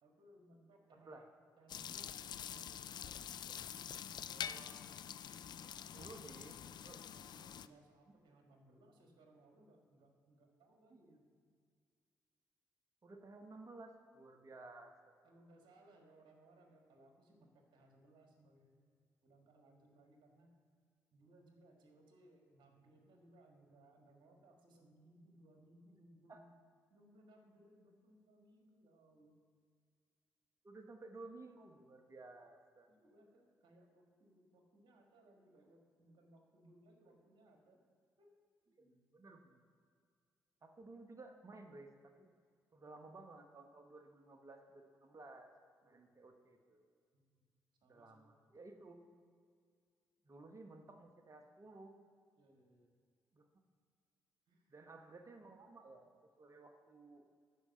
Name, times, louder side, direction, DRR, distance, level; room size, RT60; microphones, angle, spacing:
voice 1, 0.0-1.3 1.6-2.9 5.9-11.2 15.2-18.8 19.2-20.5 21.1-26.5 26.9-29.4 32.9-37.8 38.2-38.3 38.7-38.9 45.8-46.2 47.1-47.5 47.8-48.4 52.4-52.9 54.5-54.7, right 1 dB, 65° right, 2 dB, 1.6 m, -66 dB
voice 2, 0.9-1.3 4.3-4.9 5.9-6.6 6.8-7.0 10.9-11.2 13.0-15.1 26.3-26.4 30.6-32.9 38.8-39.7 40.6-42.3 42.7-45.5 45.8-46.9 47.9-49.1 50.2-51.9 53.3-53.5 54.7-56.1 56.4-57.3, right 2 dB, 35° right, 5 dB, 1.1 m, -56 dB
sound 1, 1.7-7.7, left 9 dB, 55° left, 0.3 m, -46 dB
11.0 x 4.8 x 6.5 m, 2.1 s
hypercardioid pair, 40°, 9 cm